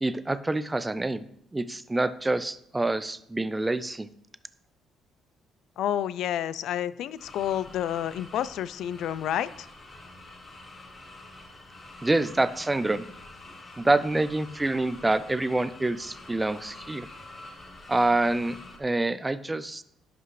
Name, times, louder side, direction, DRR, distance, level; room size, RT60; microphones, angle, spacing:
voice 1, 0.0-1.3 1.5-4.1 12.0-13.0 13.8-17.1 17.9-19.8, right 2 dB, 10° right, 15 dB, 0.3 m, -26 dB
voice 2, 5.8-9.7, left 10 dB, 75° left, 17 dB, 0.3 m, -29 dB
sound 1, 7.2-18.8, left 2 dB, 25° left, 1.1 m, -47 dB
10.5 x 5.8 x 3.2 m, 0.72 s
cardioid pair, 130°, 0 cm